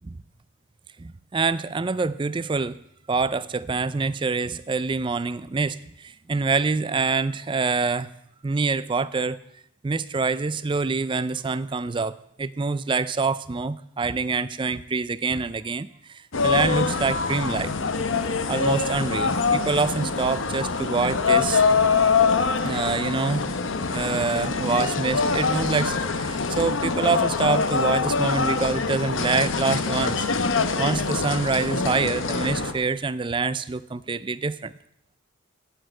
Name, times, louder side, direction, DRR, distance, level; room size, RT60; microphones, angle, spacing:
voice 1, 1.0-2.8 3.1-8.1 8.4-9.4 9.8-17.7 18.5-21.6 22.6-23.5 23.9-30.2 30.8-34.7, right 4 dB, 25° right, 17 dB, 0.4 m, -26 dB
sound 1, 16.3-32.7, left 4 dB, 60° left, 0.8 m, -24 dB
9.4 x 8.5 x 7.6 m, 0.76 s
head